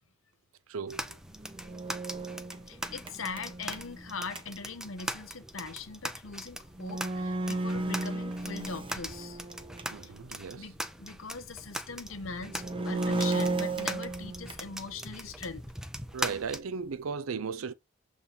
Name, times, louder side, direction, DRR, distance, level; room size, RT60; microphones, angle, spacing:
voice 1, 0.7-1.2 9.9-10.7 16.1-17.7, right 5 dB, 85° right, 0.6 m, -36 dB
sound 1, 0.9-16.6, right 1 dB, 5° right, 0.6 m, -41 dB
sound 2, 1.1-4.4 6.3-6.4 6.7-10.0 10.4-10.5 12.3-14.7, right 2 dB, 25° right, 0.8 m, -34 dB
voice 2, 2.7-9.4 10.0-10.1 10.5-15.6, left 4 dB, 70° left, 1.0 m, -41 dB
7.3 x 3.5 x 4.1 m
head